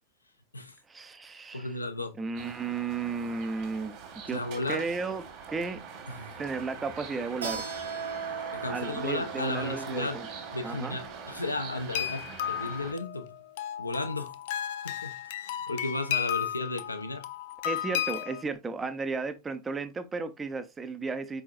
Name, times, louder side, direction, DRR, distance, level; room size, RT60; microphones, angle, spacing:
voice 1, 0.9-1.7 2.2-4.0 4.2-4.4 4.7-5.2 5.5-5.8 6.4-7.9 8.7-10.3 10.6-11.0 17.6-21.4, right 4 dB, 15° right, 0.6 m, -34 dB
voice 2, 1.5-2.1 4.2-4.9 6.1-6.4 8.5-10.2 10.5-13.3 13.8-14.3 14.8-17.3, left 2 dB, 80° left, 0.7 m, -34 dB
sound 1, 2.4-12.9, right 6 dB, 40° right, 1.5 m, -43 dB
Keyboard (musical), 7.4-12.7, right 5 dB, 75° right, 1.3 m, -40 dB
sound 2, 12.0-18.4, left 11 dB, 50° left, 0.3 m, -34 dB
4.5 x 4.2 x 2.4 m
figure-of-eight pair, 90°, 0 cm